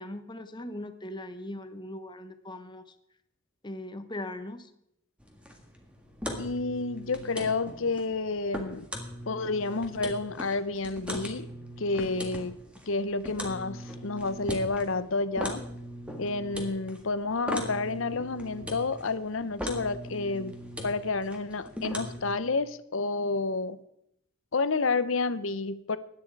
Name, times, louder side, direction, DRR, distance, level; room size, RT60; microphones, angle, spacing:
voice 1, 0.0-2.8 3.6-4.7, left 1 dB, 20° left, 9 dB, 1.0 m, -39 dB
sound 1, 5.2-22.2, equal, 5° right, 1.7 m, -39 dB
voice 2, 6.4-8.8 9.3-11.5 11.8-12.6 12.9-15.6 16.2-20.5 20.8-23.8 24.5-26.0, left 3 dB, 65° left, 14 dB, 0.8 m, -30 dB
17.0 x 10.5 x 4.7 m, 0.78 s
head